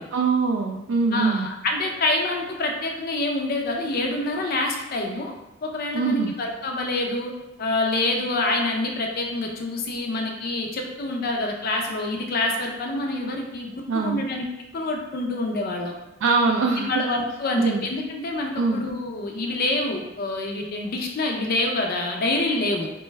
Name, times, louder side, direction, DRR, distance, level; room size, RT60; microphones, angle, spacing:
voice 1, 0.1-1.5 5.9-6.3 13.9-14.2 16.2-16.9 17.6-17.8 18.6-18.8, right 4 dB, 70° right, 0 dB, 0.3 m, -22 dB
voice 2, 1.1-5.3 5.6-7.3 7.6-14.4 14.7-15.9 16.8-22.9, left 2 dB, 50° left, 2 dB, 0.5 m, -26 dB
4.1 x 2.3 x 3.1 m, 0.98 s
head